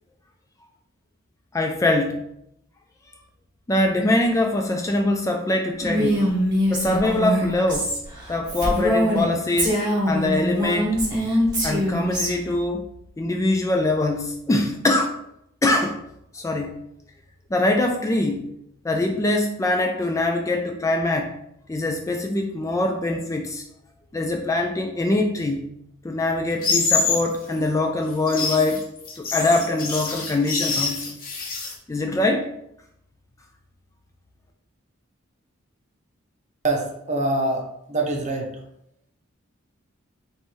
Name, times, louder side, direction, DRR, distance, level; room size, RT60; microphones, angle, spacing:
voice 1, 1.5-2.2 3.7-6.3 6.7-7.9 8.3-9.8 10.1-11.0 11.6-12.9 13.2-15.2 15.6-16.0 16.3-16.8 17.5-18.5 18.8-21.4 21.7-23.6 24.1-25.7 26.0-28.9 29.2-31.0 31.9-32.5, left 2 dB, 15° left, 3 dB, 0.3 m, -23 dB
Female speech woman speaking, 5.8-9.3 9.6-12.3, equal, 20° right, 1.5 m, -23 dB
sound 1, 26.6-27.3 28.1-31.7, left 4 dB, 45° left, 0.9 m, -25 dB
voice 2, 36.6-38.5, right 2 dB, 35° right, 1 dB, 0.8 m, -25 dB
3.3 x 3.1 x 4.4 m, 0.76 s
head